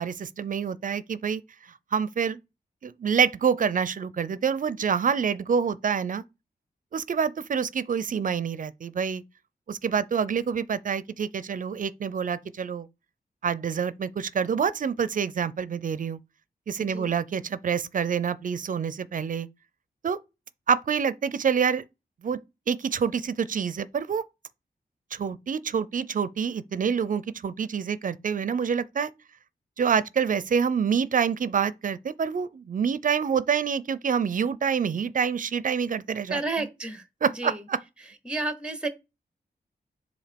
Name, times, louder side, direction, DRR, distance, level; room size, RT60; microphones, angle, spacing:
voice 1, 0.0-1.4 1.9-2.4 2.8-6.2 6.9-9.2 9.7-12.9 13.4-16.2 16.7-19.5 20.0-20.2 20.7-21.8 22.2-22.4 22.7-24.2 25.1-29.1 29.8-36.4 37.2-37.8, right 7 dB, 55° right, 0.5 m, -27 dB
voice 2, 16.8-17.1 36.3-37.7 38.2-38.9, right 3 dB, 5° right, 0.8 m, -31 dB
7.2 x 2.7 x 5.1 m
wide cardioid pair, 135°, 17 cm